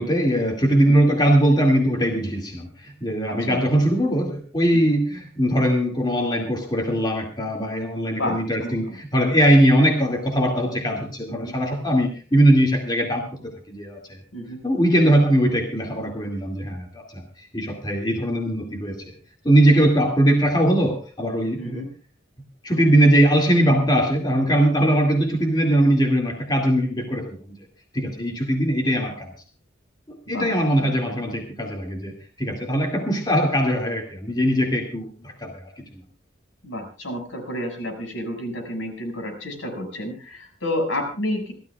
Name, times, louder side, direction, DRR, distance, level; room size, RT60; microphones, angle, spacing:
voice 1, 0.0-14.2 14.6-19.1 19.4-21.8 22.6-27.6 27.9-29.3 30.1-35.9, right 1 dB, 20° left, 2 dB, 2.2 m, -21 dB
voice 2, 3.3-3.6 4.8-5.0 8.1-9.0 11.3-11.5 14.3-14.6 21.6-21.9 30.3-30.5 36.6-41.5, left 1 dB, 85° left, 4 dB, 6.1 m, -30 dB
28.0 x 13.0 x 2.4 m, 0.36 s
head